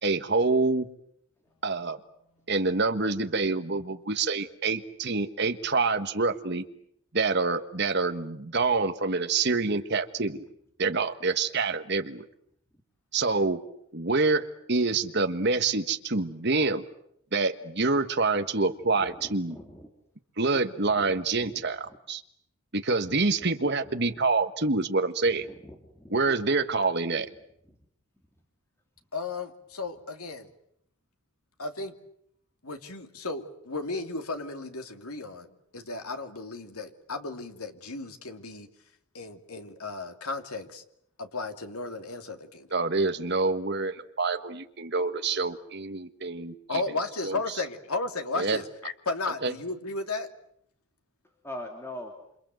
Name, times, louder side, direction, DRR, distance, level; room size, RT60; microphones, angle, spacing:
voice 1, 0.0-0.9 1.6-2.0 2.5-6.6 7.1-10.4 10.8-12.2 13.1-13.6 13.9-16.8 17.3-19.6 20.4-22.2 22.7-25.5 26.1-27.3 42.7-46.8 47.2-47.4 48.4-48.6 49.4-49.5, right 3 dB, 50° right, 8 dB, 1.6 m, -26 dB
voice 2, 19.0-19.9 21.0-21.6 25.6-26.1 51.4-52.1, left 1 dB, 10° left, 3 dB, 2.9 m, -42 dB
voice 3, 29.1-30.5 31.6-31.9 32.6-38.7 39.1-40.8 41.2-42.7 46.7-50.3, left 3 dB, 85° left, 6 dB, 2.8 m, -34 dB
27.5 x 27.5 x 7.9 m, 0.72 s
head